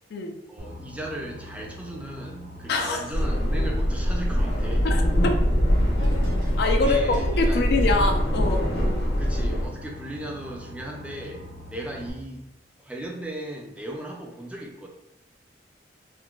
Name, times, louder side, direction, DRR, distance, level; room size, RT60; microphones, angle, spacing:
voice 1, 0.5-4.9 6.8-7.6 9.2-12.4 12.8-14.9, right 1 dB, 5° right, -1 dB, 0.4 m, -36 dB
Boat Water vehicle, 0.6-12.1, equal, 50° right, 0.7 m, -43 dB
voice 2, 2.7-3.1 4.8-5.3 6.6-7.0 7.4-8.6, left 3 dB, 65° left, 4 dB, 0.4 m, -24 dB
sound 1, 3.1-9.7, equal, 80° left, 0.8 m, -23 dB
sound 2, 6.0-12.0, left 1 dB, 90° right, 0.9 m, -42 dB
3.8 x 2.1 x 2.3 m, 0.84 s
head